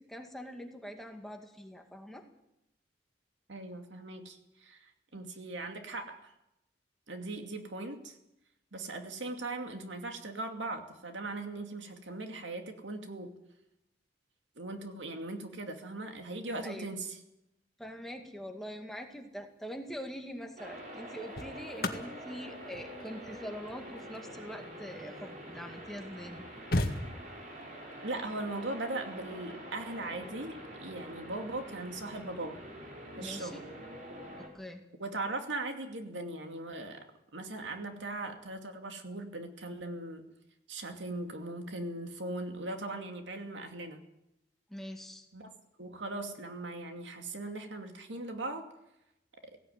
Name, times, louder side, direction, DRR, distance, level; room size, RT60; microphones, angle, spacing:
voice 1, 0.0-2.2 16.6-16.9 17.8-26.5 33.2-33.6 34.4-34.8 44.7-45.3, equal, ahead, 3 dB, 2.0 m, -44 dB
voice 2, 3.5-6.3 7.1-8.2 8.7-13.3 14.6-17.2 28.0-32.6 33.2-33.6 35.0-37.1 37.3-40.3 40.7-44.0 45.3-45.5 45.8-48.7, right 2 dB, 85° right, 5 dB, 2.5 m, -39 dB
sound 1, 19.7-20.0 20.9-25.5 26.1-26.2 26.3-27.6 29.3-29.5, left 1 dB, 50° left, 1.9 m, -37 dB
sound 2, 20.6-34.5, right 1 dB, 40° right, 4.7 m, -46 dB
17.0 x 17.0 x 9.4 m, 0.87 s
head